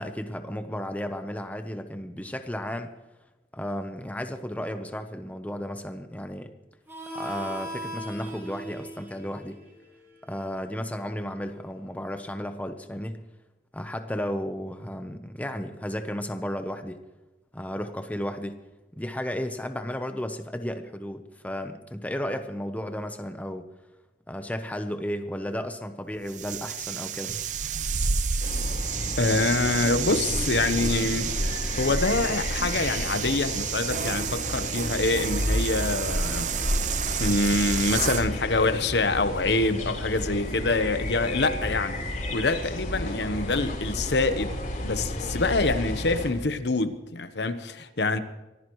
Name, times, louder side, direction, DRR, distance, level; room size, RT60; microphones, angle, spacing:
voice 1, 0.0-2.9 3.5-6.5 7.1-9.6 10.3-13.2 13.7-17.0 17.5-18.6 19.0-23.7 24.3-27.3, equal, 10° left, 0.8 m, -33 dB
Harmonica, 6.9-12.1, right 1 dB, 15° right, 7.1 m, -41 dB
sound 1, 26.3-38.3, right 7 dB, 45° right, 0.6 m, -30 dB
sound 2, 28.4-46.3, left 1 dB, 50° left, 4.4 m, -32 dB
voice 2, 29.2-31.3 31.8-36.5 37.2-42.0 42.3-44.5 44.8-48.2, left 3 dB, 75° left, 1.0 m, -25 dB
24.5 x 15.5 x 3.1 m
head